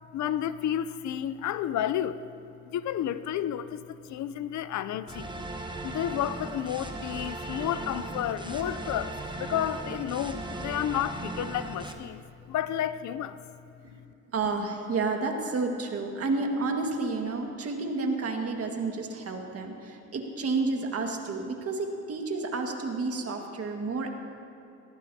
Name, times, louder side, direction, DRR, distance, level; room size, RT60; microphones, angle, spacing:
voice 1, 0.1-2.2 2.7-5.3 5.8-13.4, left 10 dB, 70° left, 14 dB, 0.6 m, -31 dB
sound 1, 5.1-11.9, right 2 dB, 15° right, 1.1 m, -37 dB
voice 2, 14.3-24.1, right 3 dB, 50° right, 3 dB, 1.8 m, -30 dB
18.0 x 17.0 x 2.8 m, 2.9 s
cardioid pair, 90°, 30 cm